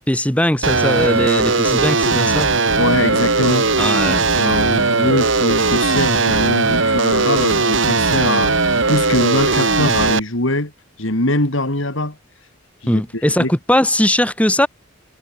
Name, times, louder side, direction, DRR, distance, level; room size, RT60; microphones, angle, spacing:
voice 1, 0.0-2.5 3.8-4.3 12.9-14.7, left 1 dB, 5° left, 2.4 m, -19 dB
sound 1, 0.6-10.2, right 3 dB, 60° right, 3.0 m, -17 dB
voice 2, 2.8-3.9 4.3-10.7 11.0-12.2 12.8-13.5, left 1 dB, 65° left, 4.0 m, -22 dB
head